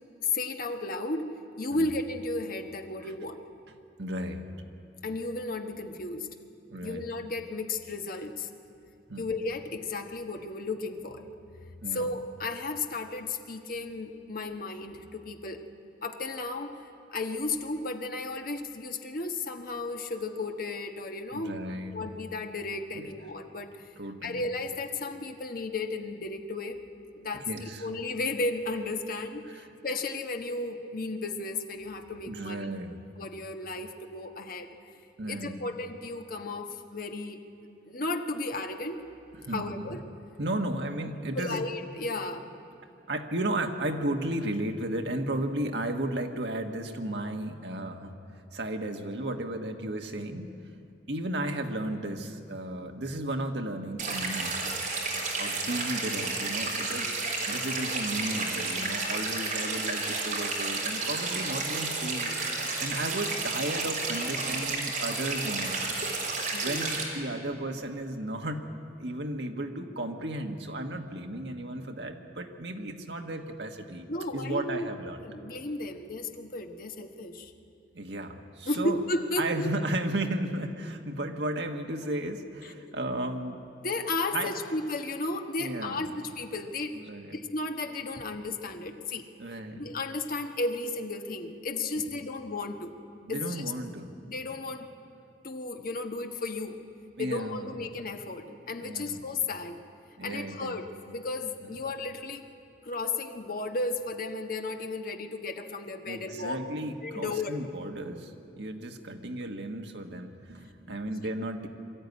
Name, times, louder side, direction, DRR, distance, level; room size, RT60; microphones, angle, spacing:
voice 1, 0.2-1.3 1.6-3.4 5.0-6.3 6.8-8.5 9.2-11.3 11.9-15.6 16.0-16.8 17.1-21.6 21.9-23.7 24.2-26.8 27.1-32.7 33.2-34.8 35.3-37.4 37.9-39.0 39.5-40.0 41.4-42.4 66.5-66.8 74.1-74.9 75.2-77.5 78.6-79.7 82.6-82.9 83.8-86.9 87.3-89.2 89.8-93.0 93.3-93.6 94.2-94.9 95.4-96.8 97.2-99.8 100.2-102.4 102.8-106.6 107.0-107.6 111.1-111.2, left 2 dB, 55° left, 5 dB, 1.2 m, -34 dB
voice 2, 4.0-4.5 6.7-7.0 9.1-9.3 11.8-12.1 21.3-22.0 22.9-23.1 24.0-24.4 27.3-27.9 29.5-29.7 32.3-33.0 35.2-35.6 39.4-40.0 40.4-41.6 43.1-48.1 48.5-50.5 51.1-54.8 55.4-57.1 57.4-66.2 66.6-68.7 69.0-75.2 77.9-79.0 79.4-83.6 84.3-84.6 85.6-86.1 86.9-87.4 89.4-89.9 92.0-92.1 93.3-94.1 97.2-97.7 98.8-99.2 100.2-100.8 106.1-111.7, right 1 dB, 70° right, 4 dB, 1.5 m, -34 dB
sound 1, 54.0-67.0, right 3 dB, 50° right, 3.8 m, -31 dB
23.0 x 13.5 x 9.5 m, 2.5 s
head